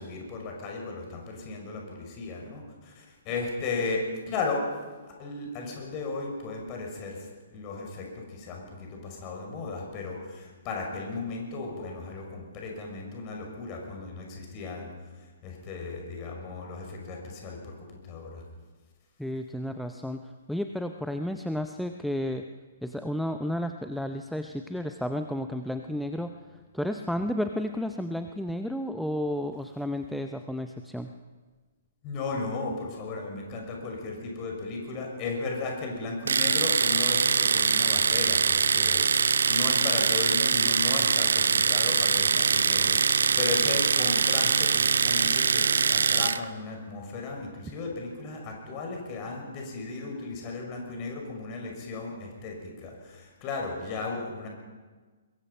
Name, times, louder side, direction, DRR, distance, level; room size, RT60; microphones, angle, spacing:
voice 1, 0.0-4.6 5.2-14.9 15.4-18.4 32.0-54.5, left 3 dB, 30° left, 1 dB, 6.1 m, -35 dB
voice 2, 19.2-20.2 20.5-22.4 22.8-26.4 26.7-31.1, left 1 dB, ahead, 6 dB, 0.8 m, -32 dB
Domestic sounds home sounds, 36.3-46.4, right 5 dB, 60° right, 0.7 m, -23 dB
23.0 x 22.0 x 5.6 m, 1.4 s
figure-of-eight pair, 120°, 0 cm